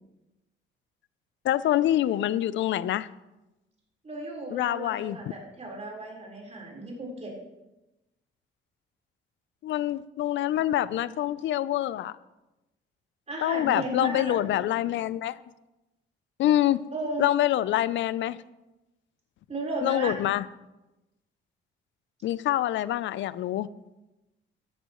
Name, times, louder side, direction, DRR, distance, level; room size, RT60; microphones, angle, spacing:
voice 1, 1.4-3.1 4.5-5.2 9.6-12.1 13.4-15.4 16.4-16.8 17.2-18.4 19.8-20.5 22.2-23.7, left 13 dB, 70° left, 17 dB, 0.5 m, -26 dB
voice 2, 4.0-7.3 13.3-14.7 16.9-17.3 19.5-20.1, right 2 dB, 35° right, -2 dB, 4.2 m, -35 dB
14.0 x 10.0 x 3.1 m, 1.0 s
cardioid pair, 90°, 20 cm